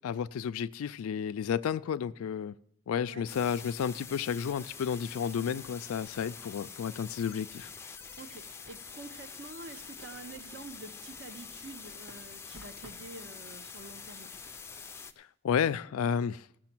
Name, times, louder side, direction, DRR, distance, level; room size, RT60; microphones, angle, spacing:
voice 1, 0.0-2.5 2.9-7.7 15.2-16.5, left 7 dB, 80° left, 0.3 m, -32 dB
sound 1, 3.3-15.1, left 5 dB, 10° left, 0.4 m, -46 dB
sound 2, 7.6-14.6, right 1 dB, 80° right, 1.8 m, -58 dB
voice 2, 8.2-14.3, right 3 dB, 55° right, 0.8 m, -47 dB
15.5 x 6.3 x 6.0 m
head